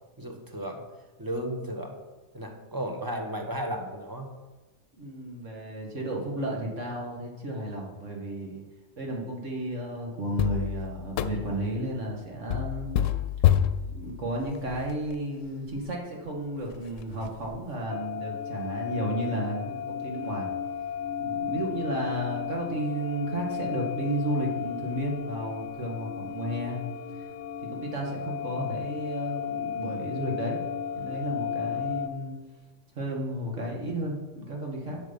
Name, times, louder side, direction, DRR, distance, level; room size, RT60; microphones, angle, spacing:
voice 1, 0.2-0.8 1.2-2.0 2.3-4.3 28.6-28.8, right 1 dB, 15° right, 3 dB, 1.2 m, -34 dB
voice 2, 5.0-8.6 9.0-12.9 13.9-20.5 21.2-26.8 27.1-27.3 27.7-30.6 30.9-32.4 33.0-35.0, right 1 dB, 70° right, -1 dB, 2.2 m, -33 dB
sound 1, 10.4-11.7 12.5-15.1 15.7-15.8 16.3-16.4 16.7-17.6, left 11 dB, 80° left, 0.9 m, -28 dB
sound 2, 17.9-32.1, left 8 dB, 55° left, 0.6 m, -34 dB
11.0 x 6.5 x 5.3 m, 1.2 s
omnidirectional pair, 1.3 m